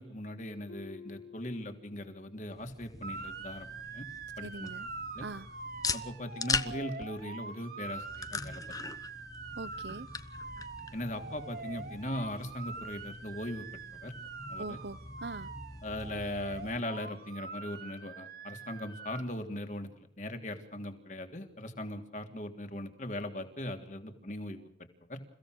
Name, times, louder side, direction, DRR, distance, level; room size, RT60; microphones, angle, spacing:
voice 1, 0.0-4.1 4.4-4.7 5.1-5.3 5.9-8.6 10.9-13.6 14.0-14.1 14.5-14.8 15.8-24.6 25.1-25.2, left 1 dB, 40° left, 5 dB, 3.2 m, -39 dB
Harp, 0.7-2.4 2.8-3.2 3.8-3.9, left 5 dB, 80° left, 6.3 m, -52 dB
sound 1, 2.5-16.8, left 4 dB, 20° left, 1.0 m, -41 dB
Motor vehicle (road) / Siren, 3.0-19.2, right 4 dB, 50° right, 2.6 m, -44 dB
voice 2, 4.4-4.9 5.2-5.5 9.6-10.1 14.6-15.5, right 3 dB, 70° right, 17 dB, 1.1 m, -42 dB
29.5 x 16.5 x 6.5 m, 0.69 s
head